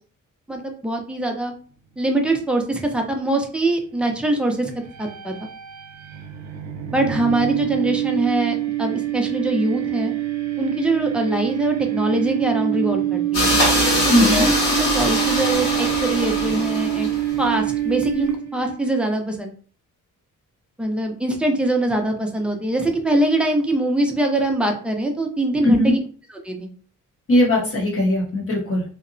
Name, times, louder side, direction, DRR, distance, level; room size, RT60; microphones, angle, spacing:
voice 1, 0.5-1.5 2.0-4.7 5.0-5.3 6.9-10.1 10.6-13.6 14.0-17.1 17.4-19.5 20.8-26.0 26.4-26.7, right 1 dB, 5° right, 2 dB, 0.4 m, -23 dB
sound 1, 4.7-18.8, right 13 dB, 55° right, 0.5 m, -26 dB
sound 2, 13.3-17.4, left 1 dB, 90° left, 1.5 m, -22 dB
voice 2, 14.1-14.5 25.6-25.9 27.3-28.8, left 1 dB, 45° left, -3 dB, 0.7 m, -18 dB
2.7 x 2.0 x 2.5 m, 0.43 s
wide cardioid pair, 115°, 33 cm